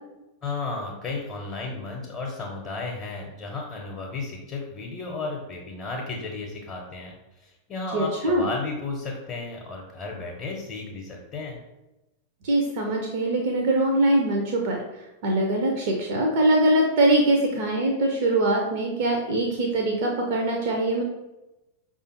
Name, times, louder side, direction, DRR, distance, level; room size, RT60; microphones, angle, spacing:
voice 1, 0.4-11.6, left 3 dB, 30° left, -1 dB, 0.7 m, -34 dB
voice 2, 7.9-8.5 12.4-21.0, right 1 dB, 50° right, 1 dB, 0.5 m, -23 dB
4.9 x 2.4 x 2.9 m, 0.99 s
figure-of-eight pair, 90°, 0 cm